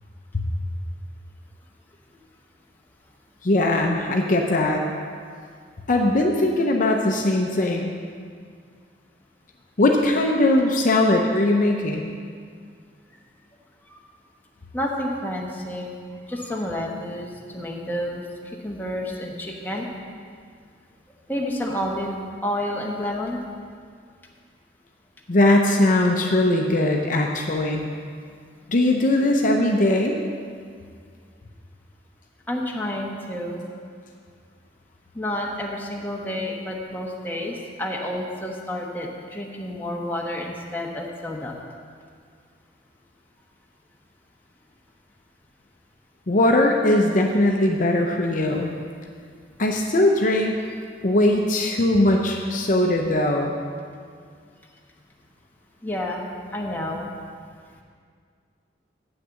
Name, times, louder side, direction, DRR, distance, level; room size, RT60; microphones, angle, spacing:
voice 1, 3.4-4.8 5.9-7.9 9.8-12.1 25.3-27.8 28.7-30.2 46.3-48.7 49.6-50.5 51.0-53.6, left 1 dB, 45° left, 1 dB, 0.6 m, -20 dB
voice 2, 14.7-15.9 16.3-17.3 17.5-18.2 18.6-19.9 21.3-22.2 22.4-23.4 32.5-33.7 35.1-41.6 48.5-48.6 55.8-56.2 56.5-57.1, left 1 dB, 10° left, -2 dB, 1.1 m, -29 dB
8.1 x 6.5 x 7.6 m, 2.1 s
head